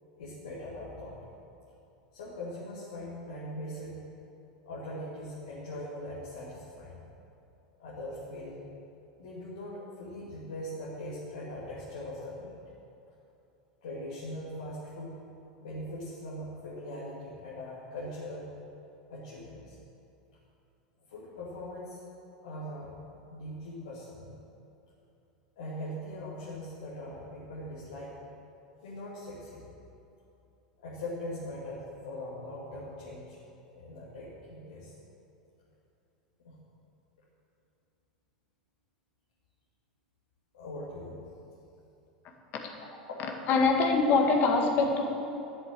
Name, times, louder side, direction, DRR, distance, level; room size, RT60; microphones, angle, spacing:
voice 1, 0.1-1.1 2.1-4.0 4.7-7.0 7.8-8.6 9.2-12.6 13.8-15.2 15.6-18.5 19.1-19.8 21.1-22.0 22.4-23.0 23.3-24.4 25.6-28.2 28.8-29.6 30.8-33.4 33.7-34.9 36.4-36.6 40.5-41.3, left 1 dB, 70° left, -8 dB, 2.5 m, -41 dB
voice 2, 43.5-45.1, left 3 dB, 45° left, 2 dB, 1.9 m, -24 dB
11.0 x 7.9 x 7.6 m, 2.8 s
figure-of-eight pair, 85°, 4 cm